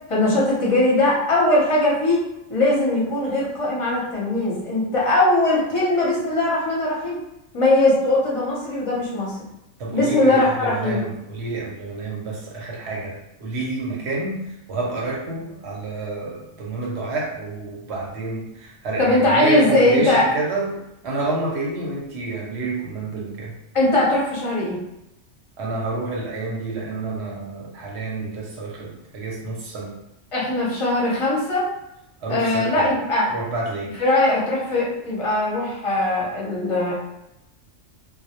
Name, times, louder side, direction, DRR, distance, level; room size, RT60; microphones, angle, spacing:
voice 1, 0.1-2.2 2.5-7.2 7.5-9.4 9.9-11.0 19.0-20.3 23.7-24.8 30.3-31.7 32.3-33.3 34.0-36.9, left 2 dB, 35° left, -5 dB, 0.6 m, -20 dB
voice 2, 9.8-14.4 14.7-20.8 21.0-23.5 25.6-29.9 32.2-32.9 33.3-33.9, right 3 dB, 65° right, -3 dB, 0.8 m, -29 dB
2.2 x 2.0 x 2.8 m, 0.88 s
omnidirectional pair, 1.3 m